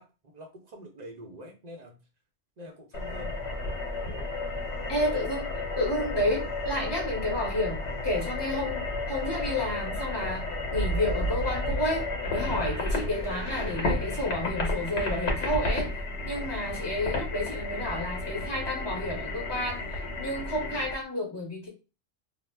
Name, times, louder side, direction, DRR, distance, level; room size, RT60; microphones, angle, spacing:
voice 1, 0.0-1.9 2.6-3.4, equal, 45° right, 2 dB, 0.6 m, -45 dB
sound 1, 2.9-20.9, left 2 dB, 80° left, 1.0 m, -32 dB
Thunder, 3.0-21.0, right 2 dB, 60° left, 0.6 m, -40 dB
voice 2, 4.9-5.5 5.8-15.9 16.2-19.8 20.2-21.7, left 1 dB, 25° left, -3 dB, 0.9 m, -31 dB
2.4 x 2.0 x 3.2 m, 0.30 s
omnidirectional pair, 1.2 m